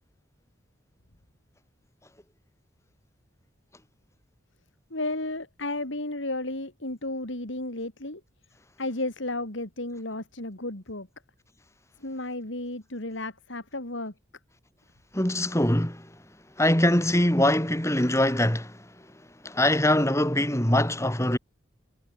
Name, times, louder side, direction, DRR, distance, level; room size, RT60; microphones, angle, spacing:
voice 1, 4.9-8.2 8.8-11.1 12.0-14.1, left 2 dB, 65° left, 3.2 m, -33 dB
voice 2, 15.1-16.0 16.6-18.7 19.4-21.4, left 1 dB, 15° left, 3.0 m, -23 dB
head